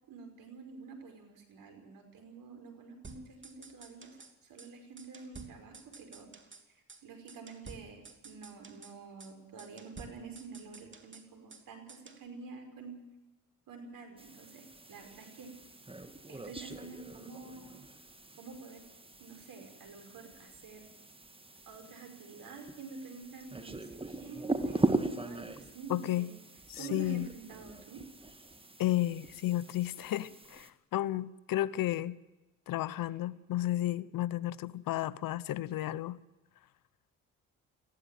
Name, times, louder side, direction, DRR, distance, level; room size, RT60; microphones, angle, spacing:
voice 1, 0.0-6.3 6.7-13.1 13.7-15.5 16.3-17.8 18.4-18.8 19.2-20.9 21.7-26.3 26.8-28.0, right 4 dB, 70° right, 5 dB, 5.6 m, -48 dB
sound 1, 3.0-4.3 4.6-4.7 5.0-6.6 6.9-7.0 7.3-8.9 9.2-9.3 9.6-11.6 11.9-12.2, right 3 dB, 35° right, 2.9 m, -52 dB
sound 2, 14.2-30.7, right 2 dB, 15° right, 2.0 m, -40 dB
voice 2, 25.9-26.3 26.7-27.3 28.8-32.2 32.7-36.2, left 14 dB, 70° left, 20 dB, 0.9 m, -32 dB
19.5 x 16.0 x 9.2 m, 1.0 s
supercardioid pair, 50°, 35 cm